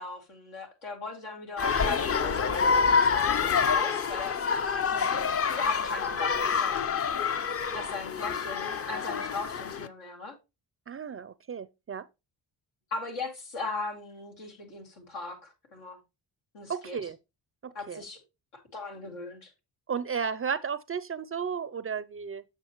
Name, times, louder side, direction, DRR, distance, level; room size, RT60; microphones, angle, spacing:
voice 1, 0.0-2.6 2.9-4.4 4.8-4.9 5.5-7.0 7.7-10.4 12.9-16.0 16.5-17.0 17.7-18.2 18.7-19.5, left 3 dB, 85° left, 2.3 m, -39 dB
sound 1, 1.6-9.9, left 5 dB, 30° left, 0.5 m, -27 dB
voice 2, 10.9-12.1 16.7-17.2 17.6-18.0 19.9-22.4, right 6 dB, 30° right, 0.4 m, -34 dB
7.2 x 6.4 x 3.0 m
supercardioid pair, 65°, 48 cm